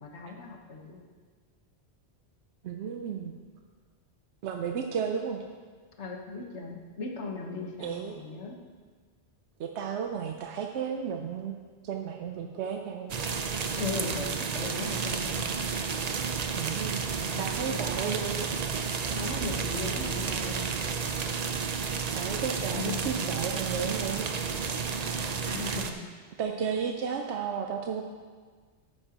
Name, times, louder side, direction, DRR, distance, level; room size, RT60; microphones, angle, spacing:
voice 1, 0.0-1.0 6.0-8.6 13.8-15.4 17.3-17.8 19.1-20.8 22.6-23.3 25.2-26.0, left 3 dB, 90° left, 0 dB, 1.5 m, -38 dB
voice 2, 2.6-3.4 4.4-5.4 7.8-8.1 9.6-11.6 11.8-13.2 16.5-17.0 17.4-18.5 22.1-24.3 26.4-28.0, right 7 dB, 80° right, 3 dB, 0.9 m, -33 dB
sound 1, 13.1-25.9, right 5 dB, 45° right, 0.6 m, -31 dB
13.5 x 8.9 x 2.9 m, 1.6 s
omnidirectional pair, 1.1 m